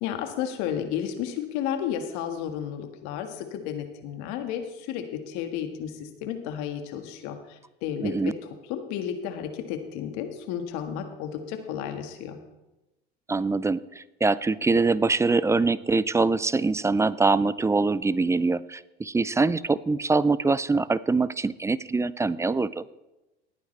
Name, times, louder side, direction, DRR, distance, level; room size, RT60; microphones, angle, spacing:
voice 1, 0.0-12.4, left 9 dB, 65° left, 6 dB, 1.8 m, -32 dB
voice 2, 8.0-8.3 13.3-22.8, right 3 dB, 10° right, 19 dB, 0.4 m, -24 dB
19.0 x 9.3 x 3.3 m, 1.0 s
hypercardioid pair, 80°, 30 cm